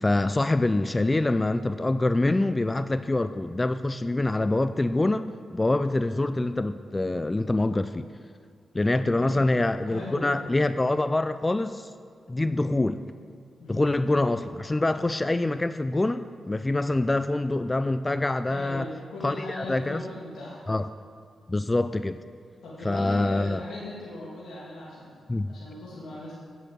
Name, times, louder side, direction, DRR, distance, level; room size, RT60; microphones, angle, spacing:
voice 1, 0.0-5.2 5.5-8.1 8.7-11.9 12.3-13.0 13.7-18.9 19.2-20.0 20.7-20.9 21.5-22.2 22.8-23.6 25.3-25.5, left 2 dB, 25° left, 12 dB, 0.4 m, -25 dB
voice 2, 9.0-10.3 13.6-13.9 18.5-20.6 22.6-25.1 25.5-26.4, left 2 dB, 75° left, -7 dB, 2.4 m, -39 dB
9.1 x 8.1 x 7.6 m, 2.1 s
supercardioid pair, 40°, 0 cm